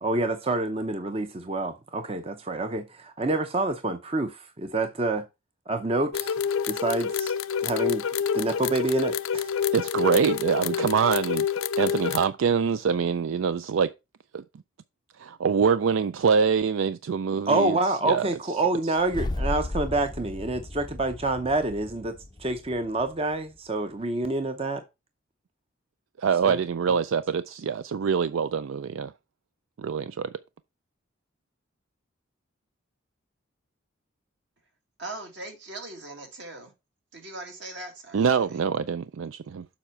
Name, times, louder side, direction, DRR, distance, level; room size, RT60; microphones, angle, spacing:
voice 1, 0.0-5.2 5.7-6.4 6.7-7.3 7.6-8.0 8.3-9.5 17.5-24.8 26.5-26.6, right 2 dB, 30° right, 0.6 m, -27 dB
sound 1, 6.1-12.2, left 7 dB, 80° left, 0.5 m, -28 dB
voice 2, 9.7-11.5 11.8-13.9 14.3-14.4 15.2-17.8 18.1-18.3 26.2-29.1 29.8-30.3 38.1-39.7, right 6 dB, 75° right, 0.4 m, -24 dB
sound 2, 19.0-23.3, left 2 dB, 20° left, 0.4 m, -35 dB
voice 3, 35.0-36.7 37.1-38.6, right 2 dB, 60° right, 2.1 m, -40 dB
7.3 x 4.9 x 4.4 m
head